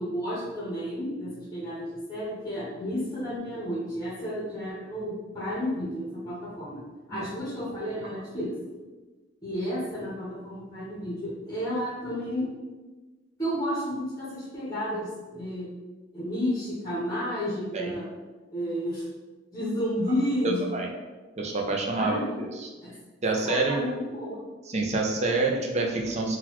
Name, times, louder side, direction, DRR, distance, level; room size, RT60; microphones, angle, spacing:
voice 1, 0.0-6.8 7.1-8.5 9.4-12.5 13.4-15.7 16.1-18.1 18.5-19.0 19.5-20.8 21.9-22.4 22.8-22.9 23.4-24.4, equal, 20° left, -7 dB, 0.8 m, -31 dB
voice 2, 20.4-20.9 21.4-22.7 23.2-23.8 24.7-26.4, right 3 dB, 35° right, 0 dB, 0.5 m, -27 dB
3.8 x 2.2 x 2.9 m, 1.3 s
head